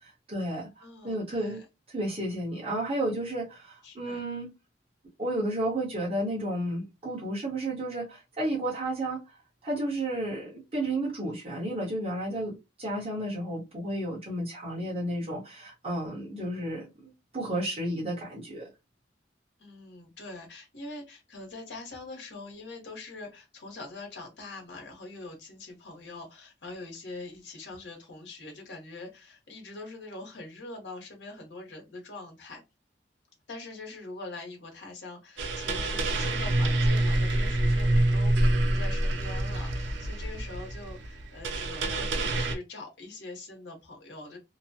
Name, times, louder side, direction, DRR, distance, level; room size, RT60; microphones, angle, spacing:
voice 1, 0.0-1.6 1.9-4.5 5.2-9.3 9.6-18.7, right 1 dB, 35° right, 1.1 m, -32 dB
voice 2, 0.8-1.7 3.8-4.2 19.6-32.6 33.5-44.4, left 2 dB, 80° left, 1.1 m, -43 dB
sound 1, 35.4-42.6, right 1 dB, 90° right, 0.6 m, -26 dB
2.9 x 2.1 x 2.7 m
head